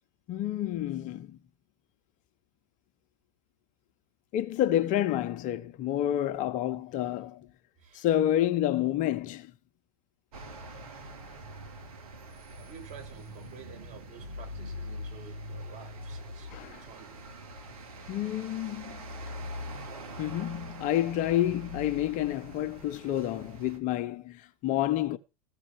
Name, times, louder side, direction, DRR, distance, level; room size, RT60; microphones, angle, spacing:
voice 1, 0.3-1.4 4.3-7.5 7.9-9.5 16.5-16.8 18.1-19.0 20.2-25.2, left 12 dB, 45° left, 0.9 m, -29 dB
voice 2, 7.8-8.1 12.5-17.2, right 7 dB, 40° right, 6.8 m, -51 dB
sound 1, 10.3-23.8, equal, 70° right, 3.1 m, -43 dB
15.5 x 6.8 x 6.3 m
hypercardioid pair, 90°, 19 cm